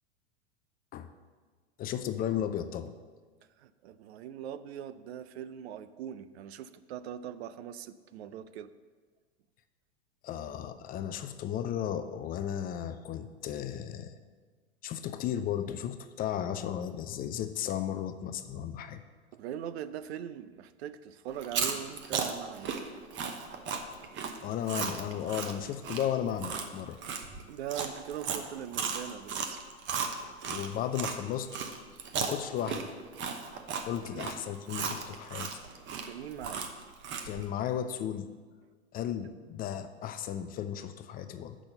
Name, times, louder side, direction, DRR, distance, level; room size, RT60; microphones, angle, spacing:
voice 1, 1.8-2.9 10.2-14.2 14.8-19.0 24.4-27.0 30.5-31.5 32.2-32.9 33.9-35.5 37.3-38.3 38.9-41.6, left 10 dB, 25° left, 10 dB, 0.4 m, -34 dB
voice 2, 3.6-8.7 19.3-22.7 27.5-29.6 34.0-34.2 36.0-36.6, right 10 dB, 65° right, 13 dB, 0.6 m, -41 dB
Chewing mastication, 21.3-31.2 31.5-37.5, right 6 dB, 35° right, 1.0 m, -35 dB
7.0 x 6.1 x 6.6 m, 1.5 s
hypercardioid pair, 105°, 35 cm